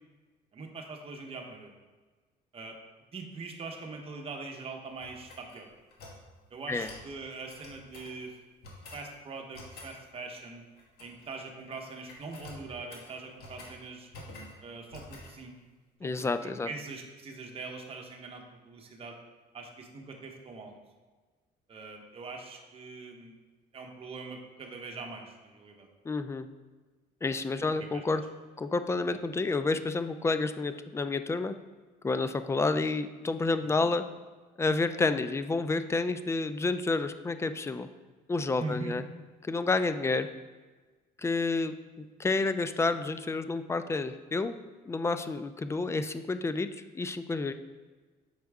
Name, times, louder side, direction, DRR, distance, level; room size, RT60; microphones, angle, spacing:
voice 1, 0.5-1.7 2.5-2.8 3.1-5.7 6.5-8.4 8.9-10.6 11.0-14.1 14.6-15.6 16.0-19.2 19.5-20.8 21.7-23.3 23.7-25.9 27.9-28.0 33.6-33.7 38.6-38.9, right 3 dB, 35° right, 2 dB, 1.0 m, -42 dB
sound 1, 5.0-6.2 6.8-7.1 7.5-8.2 8.6-9.1 9.5-9.9 10.8-11.3 11.6-11.8 12.1-13.8 14.1-14.6 14.9-15.3, left 2 dB, 70° left, 1.4 m, -48 dB
voice 2, 16.0-16.7 26.0-26.5 27.2-28.2 28.6-31.5 32.0-34.0 34.6-37.9 38.3-39.0 39.5-40.3 41.2-44.5 44.9-46.7 46.9-47.5, left 3 dB, 15° left, 10 dB, 0.3 m, -29 dB
6.5 x 4.6 x 3.5 m, 1.3 s
cardioid pair, 110°, 17 cm